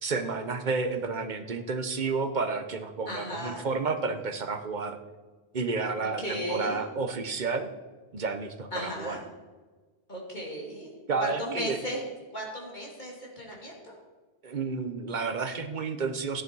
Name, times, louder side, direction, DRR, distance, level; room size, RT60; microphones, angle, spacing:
voice 1, 0.0-5.0 5.5-7.7 8.1-9.2 11.1-11.8 14.4-16.4, right 4 dB, 45° right, 8 dB, 1.0 m, -31 dB
voice 2, 3.1-3.6 6.0-6.8 8.7-9.2 10.1-10.9 11.2-12.0 12.3-14.0, equal, 45° left, -2 dB, 3.1 m, -35 dB
14.5 x 10.5 x 4.7 m, 1.3 s
omnidirectional pair, 1.1 m